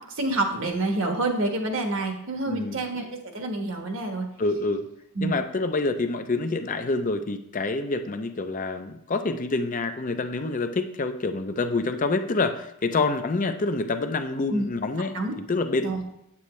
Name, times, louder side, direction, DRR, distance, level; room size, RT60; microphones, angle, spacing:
voice 1, 0.2-3.1 3.3-4.2 5.1-5.3 14.5-14.7 15.0-15.3 15.8-16.0, right 2 dB, 60° right, 3 dB, 1.3 m, -27 dB
voice 2, 2.5-2.8 4.4-4.9 5.2-15.2 15.5-16.0, left 3 dB, 35° left, 8 dB, 0.5 m, -27 dB
8.3 x 8.3 x 3.2 m, 0.80 s
head